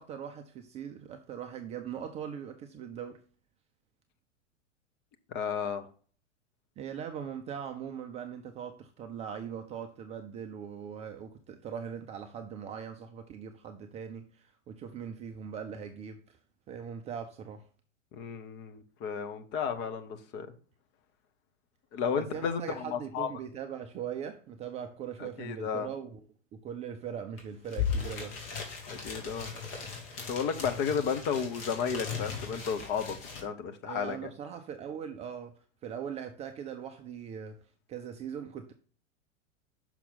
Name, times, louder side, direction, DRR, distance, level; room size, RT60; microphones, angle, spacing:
voice 1, 0.0-3.2 6.8-16.4 16.7-17.7 22.1-26.2 26.5-28.4 33.8-38.7, right 8 dB, 15° right, 0.5 m, -40 dB
voice 2, 5.3-5.9 18.1-20.5 21.9-23.3 25.4-25.9 28.9-29.5 30.2-34.2, left 6 dB, 30° left, 0.9 m, -33 dB
sound 1, 27.4-27.5 27.6-33.4, left 6 dB, 45° left, 2.7 m, -37 dB
6.1 x 5.9 x 4.0 m
figure-of-eight pair, 100°, 38 cm